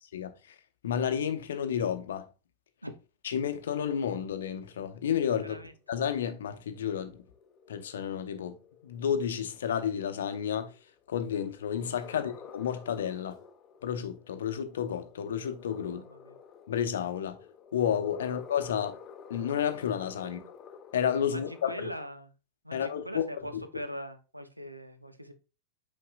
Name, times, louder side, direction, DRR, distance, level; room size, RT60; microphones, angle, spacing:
voice 1, 0.8-2.3 3.2-5.6 5.9-7.2 7.7-8.6 8.8-10.7 11.1-13.4 13.8-16.0 16.7-17.4 17.7-19.0 19.3-20.4 20.9-21.7 22.7-23.2 23.5-23.6, left 8 dB, 60° left, 0.8 m, -31 dB
sound 1, 4.7-22.1, left 6 dB, 30° left, 0.8 m, -51 dB
voice 2, 5.4-5.7 12.1-12.4 15.9-16.3 21.3-22.3 22.6-25.3, equal, 85° right, 0.8 m, -41 dB
8.5 x 5.3 x 2.4 m
figure-of-eight pair, 90°, 0 cm